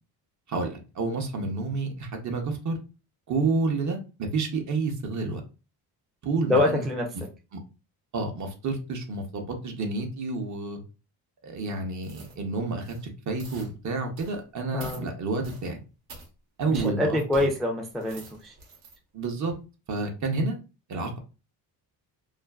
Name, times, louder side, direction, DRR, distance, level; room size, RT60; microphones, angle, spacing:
voice 1, 0.5-2.8 3.3-5.4 6.2-6.8 8.1-10.8 11.4-13.0 13.3-15.8 16.6-17.5 19.1-19.5 19.9-20.6 20.9-21.2, right 3 dB, 50° right, 3 dB, 0.7 m, -29 dB
voice 2, 6.4-7.0 14.7-15.1 16.7-18.5, left 1 dB, ahead, 0 dB, 0.3 m, -25 dB
sound 1, 12.0-12.4 12.7-13.1 13.4-13.7 14.2-14.4 14.8-15.0 15.4-15.7 16.1-16.3 16.7-16.9 17.3-17.5 17.9-19.0 19.4-19.5, right 2 dB, 70° right, 0.9 m, -45 dB
2.4 x 2.3 x 2.2 m, 0.31 s
cardioid pair, 115°, 38 cm